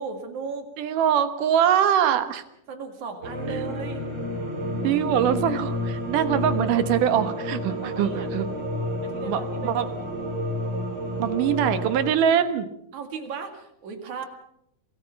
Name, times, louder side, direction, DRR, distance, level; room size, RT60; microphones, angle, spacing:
voice 1, 0.0-0.7 2.7-4.0 7.7-8.3 9.0-10.1 12.9-14.3, right 5 dB, 65° right, 6 dB, 3.6 m, -36 dB
voice 2, 0.8-2.4 3.5-3.6 4.8-8.5 9.2-9.9 11.2-12.7, right 9 dB, 85° right, 10 dB, 2.9 m, -23 dB
sound 1, 3.2-12.1, equal, 50° right, 5.5 m, -30 dB
25.5 x 18.0 x 5.9 m, 0.77 s
omnidirectional pair, 3.6 m